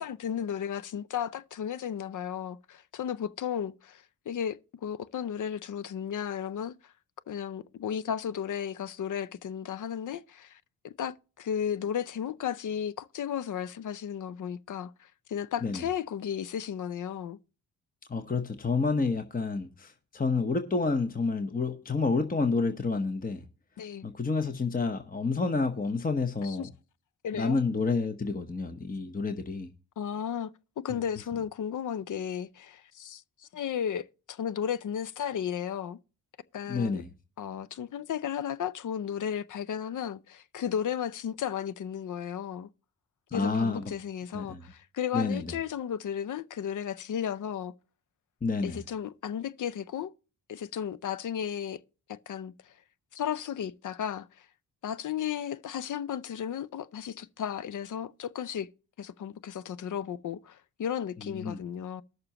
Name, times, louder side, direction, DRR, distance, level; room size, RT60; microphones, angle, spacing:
voice 1, 0.0-6.9 7.3-17.4 23.8-24.0 26.4-26.7 27.2-27.6 30.0-30.5 30.8-36.0 36.5-37.0 37.4-42.7 43.3-47.7 48.6-50.1 50.5-51.8 52.1-52.7 53.1-54.5 54.8-58.7 59.0-62.0, left 8 dB, 40° left, 0.5 m, -34 dB
voice 2, 18.1-23.4 24.0-26.7 27.3-29.7 36.7-37.1 43.3-43.8 44.3-44.6 45.1-45.5 48.4-48.8 61.3-61.6, left 4 dB, 20° left, 1.0 m, -29 dB
19.0 x 6.7 x 2.9 m
hypercardioid pair, 40°, 47 cm